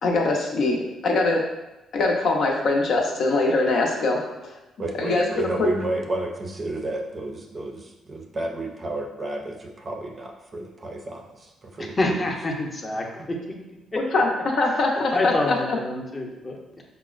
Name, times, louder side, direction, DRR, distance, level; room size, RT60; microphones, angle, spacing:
voice 1, 0.0-1.4 1.9-4.5 5.0-5.7 14.0-14.3 14.6-15.8, left 2 dB, 65° left, 0 dB, 0.6 m, -23 dB
voice 2, 4.8-12.3, right 2 dB, 35° right, 1 dB, 0.5 m, -31 dB
voice 3, 11.8-13.4 13.9-14.2 15.1-16.8, left 2 dB, 30° left, 0 dB, 0.7 m, -27 dB
5.2 x 2.0 x 2.4 m, 1.0 s
cardioid pair, 90°, 0 cm